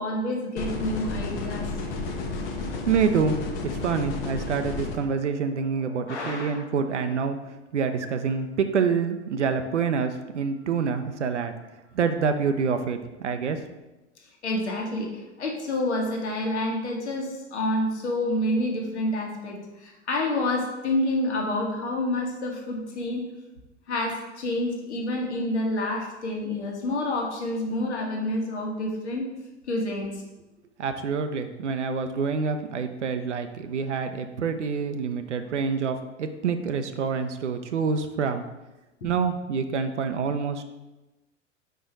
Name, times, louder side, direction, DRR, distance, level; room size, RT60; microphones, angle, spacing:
voice 1, 0.0-1.7 6.1-6.7 14.4-23.3 23.9-29.3 29.7-30.2 39.0-39.1, left 1 dB, 70° left, 0 dB, 1.4 m, -28 dB
sound 1, 0.6-5.0, left 3 dB, 50° left, 1.0 m, -32 dB
voice 2, 2.6-3.4 3.6-7.4 7.7-11.5 11.9-13.6 30.8-38.4 39.0-40.6, right 5 dB, 80° right, 8 dB, 0.6 m, -27 dB
4.9 x 4.6 x 4.6 m, 1.0 s
figure-of-eight pair, 80°, 35 cm